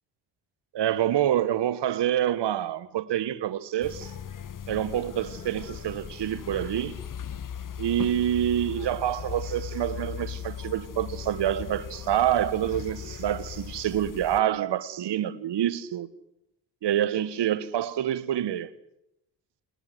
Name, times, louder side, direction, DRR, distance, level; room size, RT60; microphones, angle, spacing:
voice 1, 0.7-4.1 4.7-7.0 7.8-16.1 16.8-18.7, right 11 dB, 55° right, 1.6 m, -27 dB
sound 1, 3.8-14.4, left 8 dB, 40° left, 1.5 m, -38 dB
30.0 x 19.0 x 7.9 m
hypercardioid pair, 40°, 49 cm